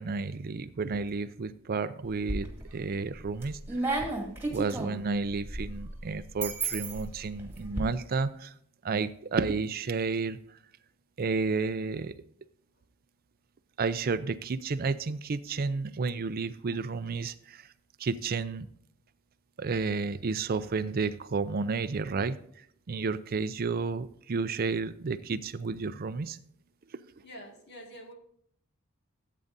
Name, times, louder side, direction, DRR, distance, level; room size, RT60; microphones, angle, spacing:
voice 1, 0.0-4.0 4.5-8.5 8.8-10.4 11.2-12.2 13.8-17.7 18.0-18.7 19.6-22.4 22.9-26.4, right 4 dB, 45° right, 14 dB, 0.4 m, -31 dB
sound 1, 2.0-2.7 3.2-7.8, right 2 dB, 10° right, 2.2 m, -34 dB
voice 2, 27.2-28.1, equal, 50° left, 2 dB, 2.0 m, -46 dB
14.5 x 8.4 x 2.6 m, 0.64 s
head